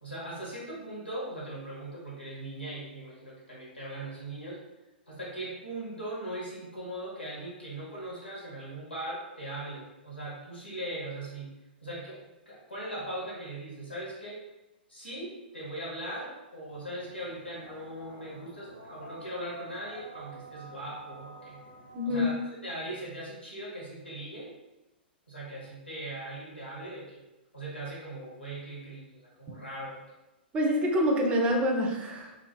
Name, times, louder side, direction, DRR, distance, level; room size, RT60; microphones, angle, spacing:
voice 1, 0.0-4.6 5.1-11.5 11.8-14.4 14.9-21.6 22.0-22.3 22.6-24.5 25.3-27.2 27.5-30.0, right 1 dB, 85° left, -6 dB, 1.0 m, -39 dB
sound 1, 16.7-22.2, right 1 dB, 80° right, 0.5 m, -49 dB
voice 2, 21.9-22.3 29.5-29.6 30.5-32.3, equal, 20° right, 0 dB, 0.4 m, -26 dB
2.4 x 2.3 x 2.2 m, 1.0 s
figure-of-eight pair, 105°, 6 cm